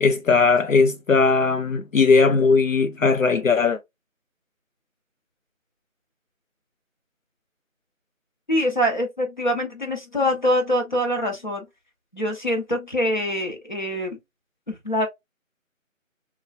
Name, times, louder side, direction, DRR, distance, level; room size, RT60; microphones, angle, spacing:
voice 1, 0.0-3.8, left 4 dB, 70° left, 0.5 m, -18 dB
voice 2, 8.5-11.6 12.1-14.2 14.7-15.1, equal, 35° left, 0.9 m, -24 dB
4.3 x 2.3 x 2.4 m
figure-of-eight pair, 170°, 41 cm